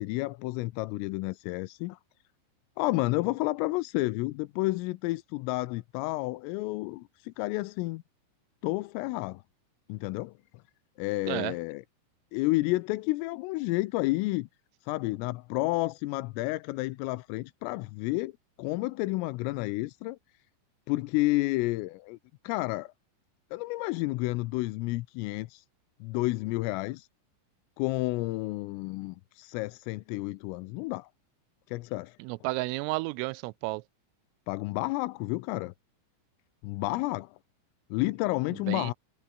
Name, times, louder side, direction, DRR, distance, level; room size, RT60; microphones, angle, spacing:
voice 1, 0.0-2.0 2.8-8.0 8.6-9.4 9.9-10.3 11.0-11.8 12.3-14.5 14.8-18.3 18.6-20.2 20.9-22.2 22.5-22.9 23.5-25.7 26.0-27.1 27.8-31.1 31.7-32.2 34.5-35.7 36.6-37.4 37.9-38.9, left 21 dB, 90° left, 3.4 m, -30 dB
voice 2, 32.2-33.8 38.7-38.9, right 22 dB, 85° right, 3.2 m, -32 dB
omnidirectional pair, 5.8 m